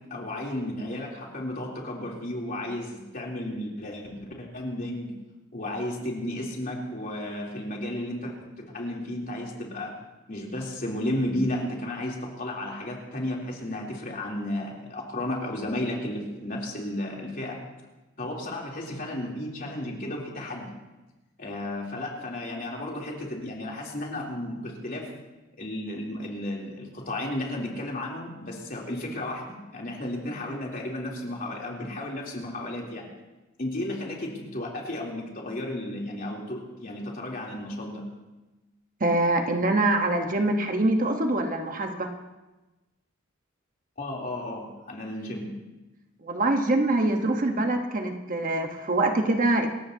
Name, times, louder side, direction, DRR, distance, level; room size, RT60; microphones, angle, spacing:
voice 1, 0.1-5.1 5.5-10.0 10.3-17.6 18.2-20.7 21.4-25.1 25.6-33.1 33.6-38.0 44.0-45.5, left 1 dB, 45° left, -2 dB, 3.3 m, -33 dB
voice 2, 39.0-42.1 46.2-49.7, right 2 dB, 45° right, 4 dB, 1.2 m, -24 dB
27.0 x 14.5 x 2.8 m, 1.1 s
head